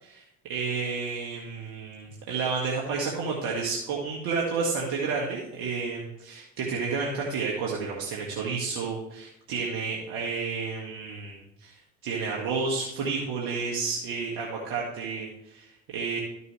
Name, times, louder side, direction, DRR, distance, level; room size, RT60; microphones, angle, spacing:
voice 1, 0.5-16.2, right 4 dB, 70° right, -3 dB, 1.9 m, -31 dB
12.5 x 6.6 x 3.2 m, 0.83 s
hypercardioid pair, 60°, 37 cm